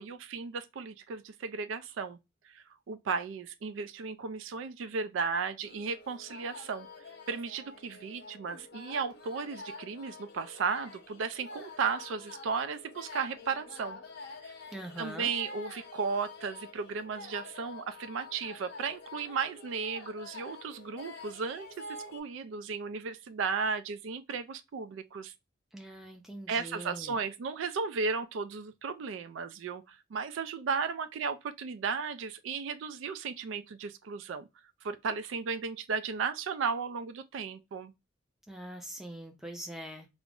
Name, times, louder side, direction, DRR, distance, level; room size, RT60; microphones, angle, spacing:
voice 1, 0.0-2.2 2.4-6.9 7.3-14.0 14.4-14.5 15.0-25.3 26.5-34.5 34.8-37.9, right 5 dB, 80° right, 0.3 m, -35 dB
sound 1, 5.6-22.2, left 3 dB, 55° left, 0.6 m, -47 dB
voice 2, 14.7-15.3 25.7-27.2 38.5-40.1, right 1 dB, ahead, 0.5 m, -43 dB
2.4 x 2.0 x 3.5 m
head